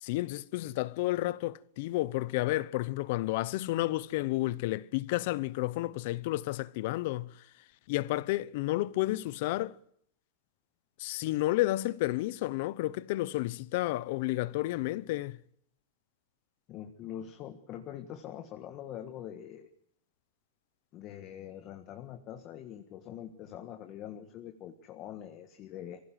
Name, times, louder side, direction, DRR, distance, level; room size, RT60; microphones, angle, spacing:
voice 1, 0.0-7.3 7.9-9.8 11.0-15.4, left 17 dB, 50° left, 0.8 m, -31 dB
voice 2, 16.7-19.7 20.9-26.0, left 10 dB, 30° left, 1.6 m, -44 dB
24.0 x 16.0 x 9.3 m
supercardioid pair, 165°, 0 cm